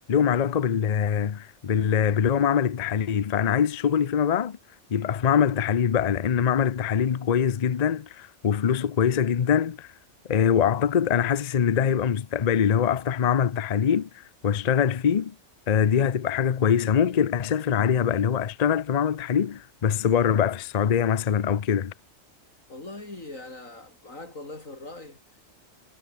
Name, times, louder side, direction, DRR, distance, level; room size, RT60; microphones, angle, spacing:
voice 1, 0.1-4.6 4.9-9.9 10.3-14.1 14.4-15.3 15.7-21.9, left 8 dB, 40° left, 0.6 m, -23 dB
voice 2, 22.7-25.2, left 2 dB, 80° left, 5.9 m, -41 dB
omnidirectional pair, 1.4 m